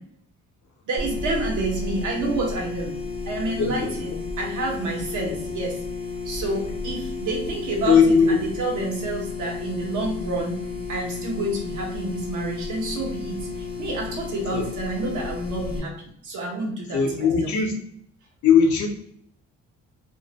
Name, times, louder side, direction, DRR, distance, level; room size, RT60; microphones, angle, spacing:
voice 1, 0.9-2.9 3.3-5.8 6.2-10.6 10.9-15.9 16.2-17.5, right 2 dB, 80° right, 0 dB, 0.9 m, -29 dB
sound 1, 1.0-15.8, left 4 dB, 60° right, 1.1 m, -32 dB
voice 2, 3.6-3.9 7.9-8.4 14.5-14.7 16.9-17.7 18.4-18.9, left 6 dB, 70° left, 2 dB, 0.7 m, -19 dB
2.4 x 2.0 x 2.8 m, 0.65 s
cardioid pair, 90°, 30 cm